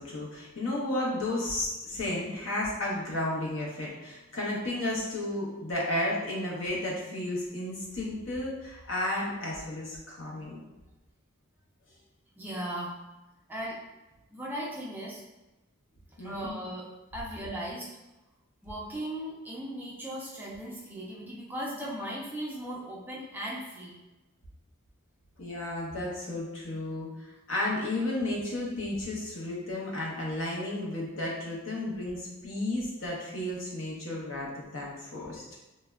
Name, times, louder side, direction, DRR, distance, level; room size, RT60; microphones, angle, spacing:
voice 1, 0.0-10.6 16.2-16.5 25.4-35.4, left 1 dB, 65° left, -4 dB, 0.7 m, -33 dB
voice 2, 12.4-13.0 13.5-13.8 14.3-15.2 16.2-16.9 17.1-17.9 18.6-24.0, right 1 dB, 10° right, -4 dB, 0.3 m, -37 dB
3.2 x 2.0 x 2.3 m, 1.1 s
head